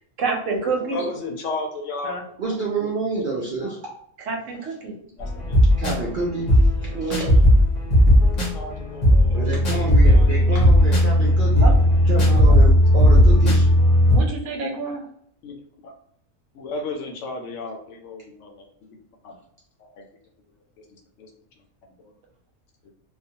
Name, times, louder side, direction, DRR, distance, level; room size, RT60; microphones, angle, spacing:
voice 1, 0.2-1.0 2.0-2.2 4.3-4.9 6.9-7.4 11.6-11.9 14.1-15.1, right 4 dB, 75° right, 2 dB, 1.0 m, -28 dB
voice 2, 0.8-2.3 5.2-5.6 6.9-7.1 8.0-8.2 8.5-9.4 9.7-10.3 12.3-12.4 15.4-15.6 15.8-15.9 16.5-18.5 19.2-19.4 19.8-20.0 21.2-21.3 22.8-22.9, left 2 dB, 70° left, 2 dB, 0.8 m, -34 dB
voice 3, 2.4-3.8 5.8-7.2 9.3-11.7 12.1-13.7, right 3 dB, 60° right, -4 dB, 0.5 m, -28 dB
sound 1, 5.2-14.2, equal, 40° left, 0.7 m, -16 dB
2.4 x 2.2 x 2.7 m, 0.67 s
omnidirectional pair, 1.4 m